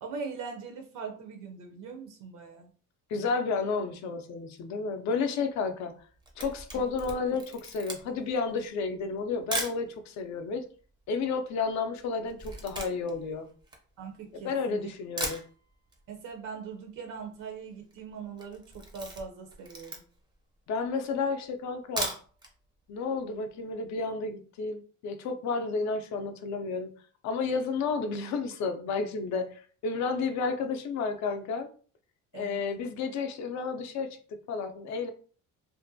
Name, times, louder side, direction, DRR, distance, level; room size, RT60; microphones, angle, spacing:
voice 1, 0.0-2.7 6.7-6.9 7.2-7.3 14.0-14.9 16.1-20.0 32.3-32.6, right 5 dB, 70° right, 3 dB, 0.6 m, -41 dB
voice 2, 3.1-5.9 6.4-10.6 11.1-13.5 14.3-15.4 20.7-22.1 22.9-26.9 27.2-31.7 32.3-34.2 34.5-35.1, left 4 dB, 60° left, 7 dB, 0.4 m, -31 dB
Camera, 6.0-9.8 10.5-10.6 10.8-14.5 14.9-15.0 15.2-16.0 16.3-16.4 16.7-16.8 16.9-17.4 17.7-17.9 18.3-20.3 20.8-20.9 21.7-22.5 22.9-23.0 23.3-23.4, right 1 dB, 15° right, 0.4 m, -38 dB
2.5 x 2.1 x 2.6 m, 0.42 s
cardioid pair, 145°, 32 cm